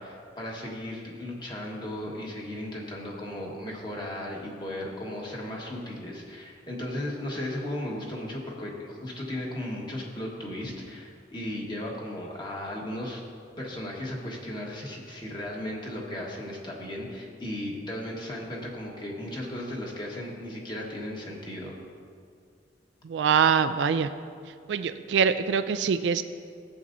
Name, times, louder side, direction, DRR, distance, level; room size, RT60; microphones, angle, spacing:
voice 1, 0.0-13.2 13.6-21.8, left 1 dB, 25° left, -2 dB, 1.4 m, -36 dB
voice 2, 23.0-24.1 24.7-26.2, right 6 dB, 80° right, 10 dB, 0.3 m, -24 dB
15.0 x 7.8 x 2.6 m, 2.2 s
head